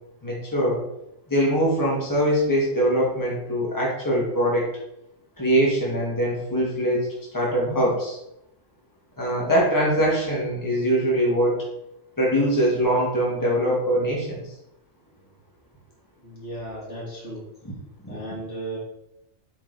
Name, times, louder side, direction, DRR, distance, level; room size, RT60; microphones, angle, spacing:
voice 1, 0.2-0.8 1.3-4.7 5.4-7.1 7.3-8.2 9.2-11.6 12.2-14.4 17.6-17.7 18.0-18.2, equal, 15° left, -4 dB, 2.0 m, -22 dB
voice 2, 16.2-17.4 18.1-18.8, right 1 dB, 60° left, -5 dB, 3.0 m, -35 dB
7.9 x 5.9 x 4.2 m, 0.82 s
omnidirectional pair, 1.3 m